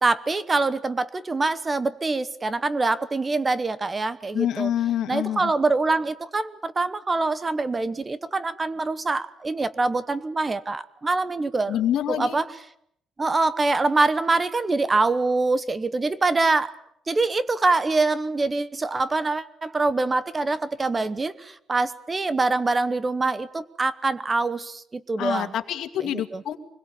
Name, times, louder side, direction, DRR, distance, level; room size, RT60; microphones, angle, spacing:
voice 1, 0.0-4.7 5.1-11.8 12.1-12.7 13.2-16.8 17.1-25.5 26.0-26.4, right 3 dB, 20° right, 15 dB, 0.9 m, -24 dB
voice 2, 4.3-5.5 11.7-12.4 25.2-26.6, left 11 dB, 65° left, 7 dB, 2.2 m, -26 dB
25.0 x 21.5 x 8.4 m, 0.71 s
cardioid pair, 170°, 0 cm